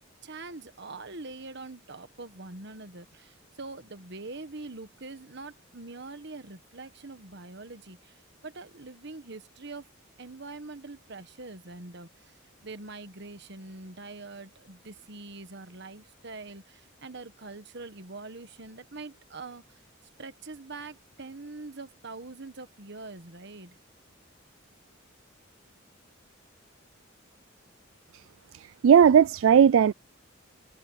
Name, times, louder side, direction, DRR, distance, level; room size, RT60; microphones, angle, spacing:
voice 1, 0.0-9.9 10.2-19.8 20.2-23.8, right 3 dB, 55° right, 1.5 m, -44 dB
voice 2, 28.5-29.9, right 8 dB, 70° right, 0.3 m, -18 dB
head